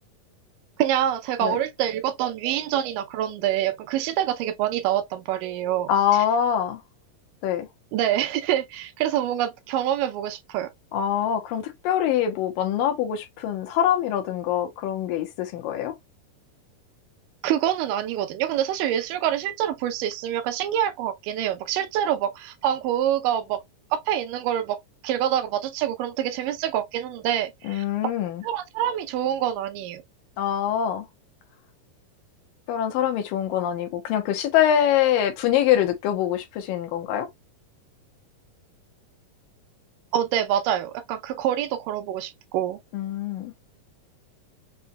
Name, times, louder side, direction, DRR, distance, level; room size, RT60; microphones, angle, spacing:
voice 1, 0.8-6.2 7.9-10.7 17.4-23.6 23.9-24.8 25.0-27.9 28.4-30.0 40.1-42.8, right 11 dB, 80° right, 2.1 m, -26 dB
voice 2, 5.9-6.8 7.4-7.7 10.9-15.9 27.6-28.4 30.4-31.1 32.7-37.3 42.9-43.5, left 10 dB, 85° left, 2.6 m, -24 dB
6.1 x 2.8 x 2.2 m
omnidirectional pair, 4.0 m